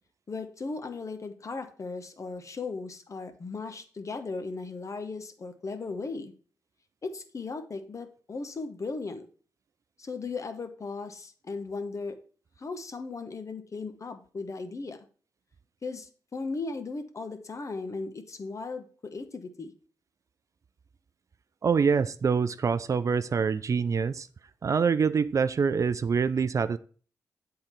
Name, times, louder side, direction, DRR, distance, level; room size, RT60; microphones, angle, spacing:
voice 1, 0.3-6.3 7.0-9.3 10.0-12.2 12.6-15.0 15.8-19.7, left 4 dB, 45° left, 1.0 m, -37 dB
voice 2, 21.6-24.3 24.6-26.8, right 6 dB, 45° right, 0.4 m, -25 dB
8.1 x 3.8 x 4.4 m
supercardioid pair, 50°, 7 cm